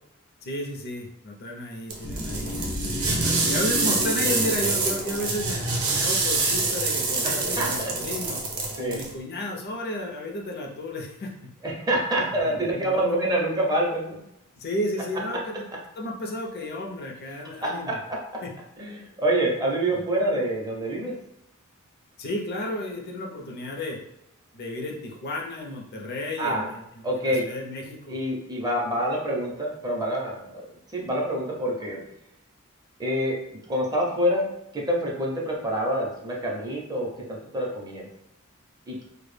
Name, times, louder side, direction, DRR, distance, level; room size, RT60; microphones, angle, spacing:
voice 1, 0.4-3.0 3.2-8.4 8.8-11.5 12.2-13.3 14.6-15.7 16.0-18.0 18.4-18.5 19.9-20.0 22.2-24.0 24.5-26.8 27.2-28.2, left 1 dB, 50° left, 0 dB, 0.4 m, -33 dB
sound 1, 1.9-9.1, right 3 dB, 75° right, 0.6 m, -26 dB
sound 2, 2.0-9.0, left 1 dB, 80° left, 0.9 m, -35 dB
voice 2, 7.2-7.9 8.8-9.0 11.6-14.3 17.4-18.2 18.8-21.1 26.4-26.7 27.0-27.4 28.1-30.6 30.9-32.0 33.0-33.4 33.7-34.4 34.7-38.1 38.9-39.0, right 1 dB, 20° right, -2 dB, 0.5 m, -26 dB
2.1 x 2.0 x 3.1 m, 0.81 s
head